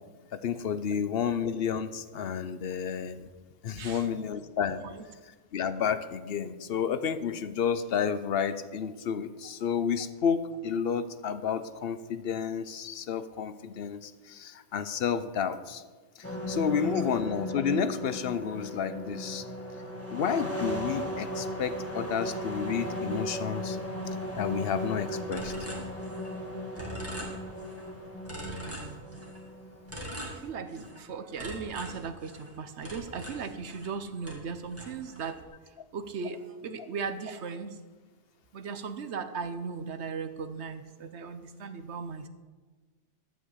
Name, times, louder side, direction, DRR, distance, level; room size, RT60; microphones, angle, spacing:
voice 1, 0.3-3.3 3.6-4.8 5.5-15.8 16.5-19.4 20.1-23.8 24.4-25.5, left 7 dB, 60° left, 12 dB, 0.8 m, -31 dB
voice 2, 3.7-4.2 4.8-5.1 16.6-17.1 28.3-29.4 30.3-35.4 35.7-37.8 38.5-42.3, right 5 dB, 70° right, 10 dB, 1.1 m, -38 dB
sound 1, 16.2-30.1, equal, 10° left, 1.6 m, -36 dB
sound 2, 25.3-26.5 26.7-27.9 28.2-29.4 29.9-31.0 31.4-34.0 34.2-35.4, equal, 10° right, 2.1 m, -42 dB
12.5 x 5.5 x 8.1 m, 1.3 s
omnidirectional pair, 1.2 m